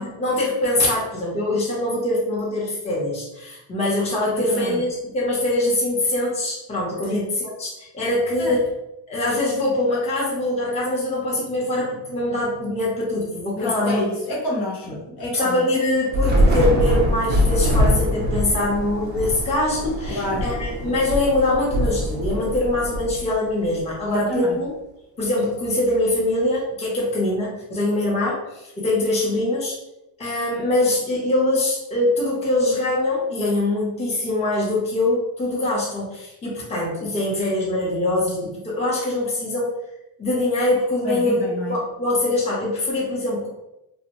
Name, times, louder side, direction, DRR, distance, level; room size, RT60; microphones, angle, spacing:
voice 1, 0.0-8.7 9.1-14.0 14.9-15.0 15.3-24.7 25.2-29.8 30.2-39.7 40.2-43.5, left 1 dB, 15° left, -5 dB, 0.7 m, -23 dB
voice 2, 4.3-4.8 7.1-7.2 8.4-8.6 13.6-15.6 20.1-20.5 24.1-24.6 41.0-41.7, left 1 dB, 60° left, -2 dB, 0.9 m, -28 dB
Thunder / Rain, 16.1-23.6, equal, 25° right, 0.4 m, -23 dB
2.5 x 2.0 x 2.9 m, 0.90 s
cardioid pair, 125°, 45 cm